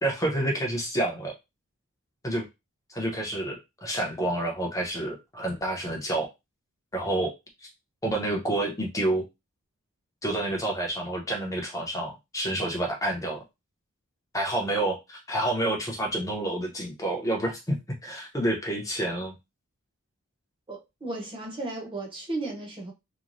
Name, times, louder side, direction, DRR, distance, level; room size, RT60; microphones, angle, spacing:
voice 1, 0.0-1.3 2.2-2.5 2.9-6.3 6.9-7.3 7.6-7.7 8.0-9.2 10.2-13.4 14.3-19.3, right 1 dB, 15° left, 0.8 m, -29 dB
voice 2, 20.7-22.9, right 2 dB, 25° right, 0.9 m, -35 dB
3.0 x 2.2 x 2.5 m
head